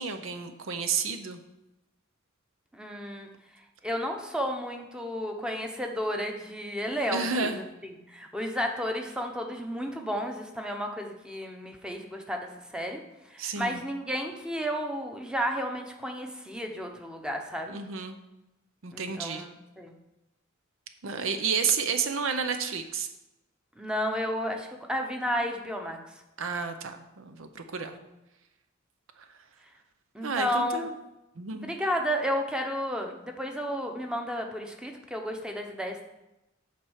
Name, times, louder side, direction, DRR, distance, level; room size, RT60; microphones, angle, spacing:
voice 1, 0.0-1.4 7.1-7.6 13.4-13.8 17.7-18.2 18.8-19.5 21.0-23.1 26.4-28.0 30.2-30.9 31.4-31.7, right 5 dB, 70° right, 8 dB, 0.7 m, -31 dB
voice 2, 2.7-3.3 3.8-7.5 7.8-13.0 13.3-17.8 18.9-19.9 23.8-26.0 27.8-28.0 30.1-30.9 31.5-36.0, equal, 5° right, 3 dB, 0.9 m, -32 dB
9.3 x 4.4 x 6.4 m, 0.96 s
head